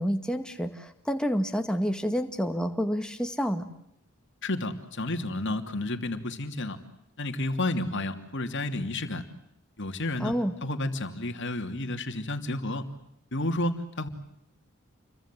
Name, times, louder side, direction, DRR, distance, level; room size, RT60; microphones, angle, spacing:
voice 1, 0.0-3.7 10.2-10.5, equal, 5° left, 6 dB, 2.1 m, -28 dB
voice 2, 4.4-6.8 7.2-9.2 9.8-10.3 10.6-12.8 13.3-14.1, left 2 dB, 55° left, 7 dB, 2.9 m, -31 dB
29.0 x 24.0 x 7.7 m, 0.77 s
head